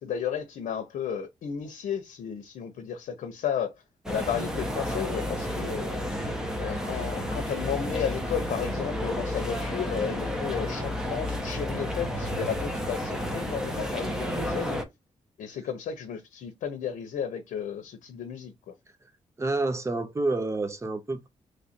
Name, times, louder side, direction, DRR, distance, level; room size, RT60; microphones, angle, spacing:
voice 1, 0.0-3.7 4.1-6.0 6.6-14.8 15.4-18.5, left 8 dB, 90° left, 0.7 m, -33 dB
sound 1, 4.1-14.8, left 1 dB, 5° right, 0.9 m, -31 dB
voice 2, 19.4-21.3, right 2 dB, 20° right, 0.7 m, -28 dB
3.2 x 2.5 x 4.2 m
cardioid pair, 95°, 13 cm